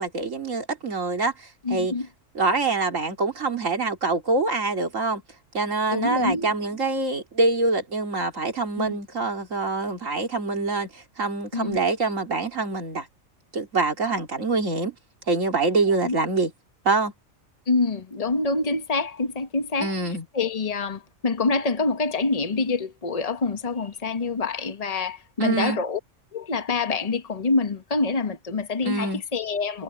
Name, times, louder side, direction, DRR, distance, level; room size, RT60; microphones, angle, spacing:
voice 1, 0.0-1.9 2.3-5.2 5.5-13.1 13.5-15.0 15.3-16.5 16.8-17.1 19.8-20.2 25.4-25.8 28.8-29.2, right 3 dB, 90° right, 3.1 m, -25 dB
voice 2, 1.6-2.1 5.9-6.5 8.8-8.9 11.5-11.8 16.0-16.2 17.7-19.9 20.3-26.0 26.3-29.8, left 3 dB, 30° left, 1.3 m, -26 dB
omnidirectional pair, 1.3 m